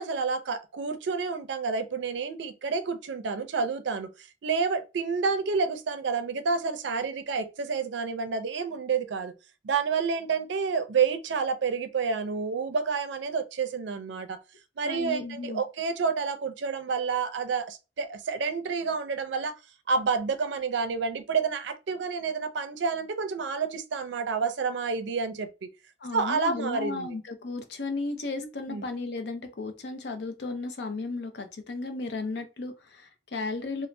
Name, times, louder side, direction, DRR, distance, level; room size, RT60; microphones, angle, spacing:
voice 1, 0.0-9.3 9.6-14.4 14.8-19.5 19.9-25.7 26.1-27.1 28.7-28.9, right 5 dB, 80° right, 0.4 m, -29 dB
voice 2, 14.8-15.6 26.0-33.9, left 3 dB, 65° left, 0.5 m, -34 dB
2.6 x 2.0 x 3.1 m
head